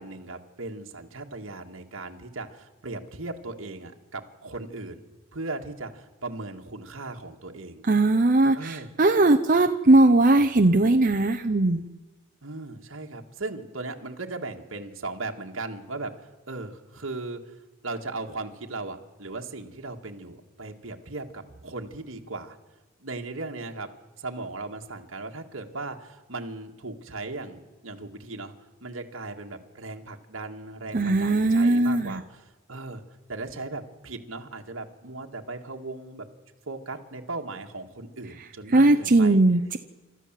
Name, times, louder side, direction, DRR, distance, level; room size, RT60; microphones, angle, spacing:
voice 1, 0.0-5.0 5.3-7.9 8.5-8.9 12.4-17.6 17.8-22.6 23.0-23.9 24.2-28.5 28.8-33.0 33.3-36.3 36.7-39.4, right 3 dB, 70° right, 2 dB, 1.8 m, -37 dB
voice 2, 7.8-11.9 30.9-32.2 38.7-39.8, right 2 dB, 40° right, 5 dB, 0.8 m, -19 dB
29.0 x 13.5 x 7.5 m, 1.2 s
head